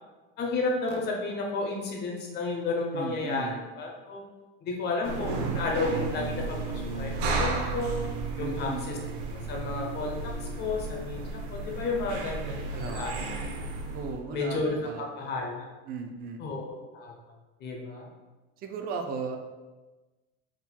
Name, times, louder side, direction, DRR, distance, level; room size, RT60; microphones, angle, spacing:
voice 1, 0.4-4.3 4.6-7.1 7.4-8.0 8.4-9.0 9.5-13.1 14.3-15.7 16.4-17.1 17.6-18.1, left 3 dB, 35° left, 0 dB, 0.8 m, -32 dB
voice 2, 2.9-3.6 8.4-8.9 12.7-13.3 13.9-15.3 15.9-16.4 18.6-19.4, right 4 dB, 30° right, 4 dB, 0.4 m, -36 dB
sound 1, 5.0-14.2, right 3 dB, 75° right, 0.7 m, -33 dB
4.3 x 3.7 x 2.2 m, 1.2 s
supercardioid pair, 145°, 32 cm